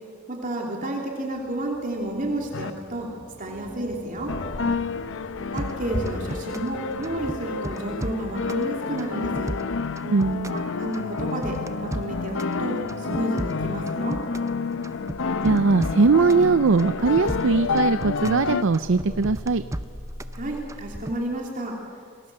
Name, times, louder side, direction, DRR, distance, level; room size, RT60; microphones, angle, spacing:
voice 1, 0.3-3.1 3.4-4.4 5.5-9.5 10.5-14.2 20.3-21.8, right 1 dB, 40° right, 0 dB, 3.0 m, -31 dB
sound 1, 1.3-21.0, equal, 40° left, 2.4 m, -42 dB
sound 2, 2.5-2.7 4.3-18.6, left 4 dB, 60° left, 0.8 m, -29 dB
sound 3, 5.6-6.7 7.0-8.7 9.0-10.6 10.9-12.6 12.9-14.5 14.8-16.5 16.8-18.4 18.7-20.4 20.7-21.2, right 1 dB, 15° right, 0.7 m, -34 dB
voice 2, 10.0-10.6 15.4-19.6, right 4 dB, 60° right, 13 dB, 0.5 m, -20 dB
28.5 x 21.5 x 7.7 m, 2.2 s
head